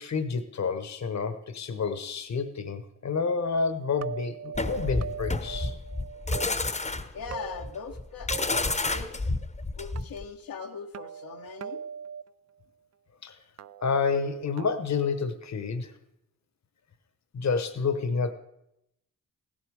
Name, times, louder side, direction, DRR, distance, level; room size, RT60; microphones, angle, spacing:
voice 1, 0.0-5.7 13.2-13.3 13.8-15.9 17.3-18.3, left 5 dB, 50° left, 11 dB, 1.1 m, -29 dB
sound 1, 4.0-6.5 7.3-8.0 8.3-8.7 10.0-10.1 10.9-12.2 13.6-14.7, right 7 dB, 50° right, 0.5 m, -40 dB
sound 2, 4.5-10.2, left 2 dB, 20° left, 0.9 m, -30 dB
voice 2, 7.1-9.3 9.7-11.8, left 5 dB, 80° left, 2 dB, 1.1 m, -40 dB
15.5 x 11.0 x 4.8 m, 0.84 s
cardioid pair, 60°, 35 cm